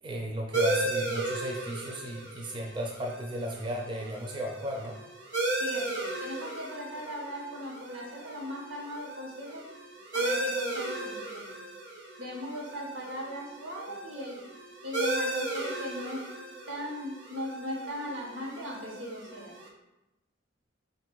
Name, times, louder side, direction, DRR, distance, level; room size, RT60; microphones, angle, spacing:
voice 1, 0.0-5.0, equal, 25° right, 0 dB, 0.4 m, -35 dB
sound 1, 0.5-19.7, right 2 dB, 65° right, 0.8 m, -35 dB
voice 2, 5.6-9.6 10.1-11.6 12.2-14.4 14.8-16.2 16.7-19.5, equal, 85° right, -2 dB, 1.2 m, -38 dB
4.1 x 2.5 x 4.5 m, 0.97 s
head